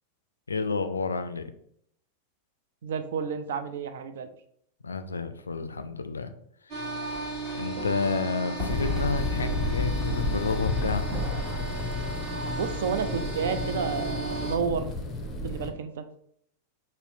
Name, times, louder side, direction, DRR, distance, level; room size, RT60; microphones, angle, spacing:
voice 1, 0.5-1.5 4.8-6.3 6.7-6.9 7.5-11.1, left 4 dB, 75° left, 9 dB, 0.3 m, -30 dB
voice 2, 2.8-4.3 12.6-14.9 15.4-16.0, right 6 dB, 60° right, 9 dB, 0.4 m, -31 dB
sound 1, 6.7-14.6, right 2 dB, 30° right, 1.1 m, -35 dB
sound 2, 8.6-15.7, left 2 dB, 25° left, 0.5 m, -31 dB
5.5 x 2.0 x 2.6 m, 0.69 s
figure-of-eight pair, 90°, 0 cm